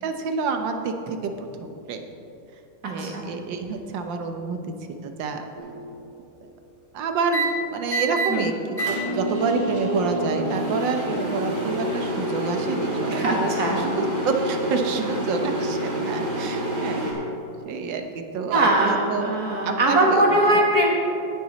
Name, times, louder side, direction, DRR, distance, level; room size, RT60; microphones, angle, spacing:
voice 1, 0.0-2.0 2.9-5.4 6.4-6.5 6.9-17.4 17.6-19.3 19.6-20.2 20.5-20.6, right 4 dB, 80° right, 6 dB, 1.5 m, -28 dB
voice 2, 2.8-3.3 8.3-8.5 13.1-13.8 15.0-15.1 16.7-17.2 18.5-20.9, right 1 dB, 55° right, -1 dB, 1.7 m, -22 dB
sound 1, 5.6-5.9 7.3-7.4 7.9-8.3 8.8-17.1, right 1 dB, 25° right, 2.1 m, -27 dB
17.5 x 6.1 x 4.1 m, 2.7 s
omnidirectional pair, 2.0 m